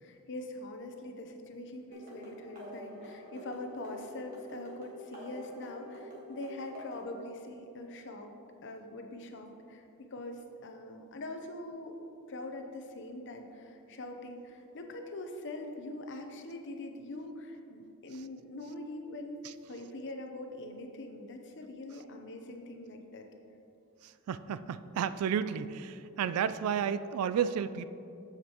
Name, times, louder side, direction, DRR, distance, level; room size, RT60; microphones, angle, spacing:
voice 1, 0.0-8.3 8.6-9.8 10.1-12.0 12.3-19.4 19.7-23.3, left 2 dB, 55° left, 4 dB, 0.7 m, -43 dB
sound 1, 1.9-7.1, equal, 40° right, 1.5 m, -47 dB
voice 2, 24.3-27.9, right 8 dB, 80° right, 14 dB, 0.3 m, -32 dB
7.7 x 7.3 x 3.0 m, 2.7 s
head